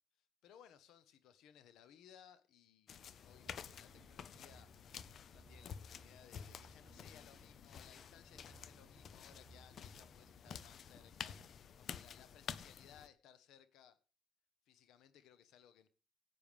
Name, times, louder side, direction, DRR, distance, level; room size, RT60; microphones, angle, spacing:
voice 1, 0.2-4.8 5.2-14.0 14.7-15.9, left 9 dB, 85° left, 1.2 m, -63 dB
sound 1, 2.9-13.1, left 8 dB, 60° left, 0.7 m, -51 dB
sound 2, 3.5-11.5, right 3 dB, 25° right, 0.6 m, -65 dB
16.5 x 9.2 x 3.5 m
cardioid pair, 90°, 0 cm